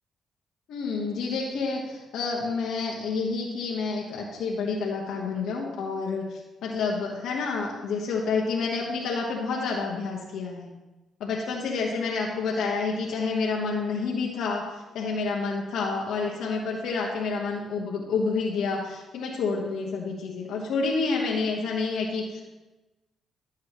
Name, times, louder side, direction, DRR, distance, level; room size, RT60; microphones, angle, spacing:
voice 1, 0.7-10.7 11.2-22.4, left 4 dB, 80° left, -3 dB, 1.3 m, -29 dB
12.5 x 7.3 x 3.1 m, 1.1 s
cardioid pair, 90°, 0 cm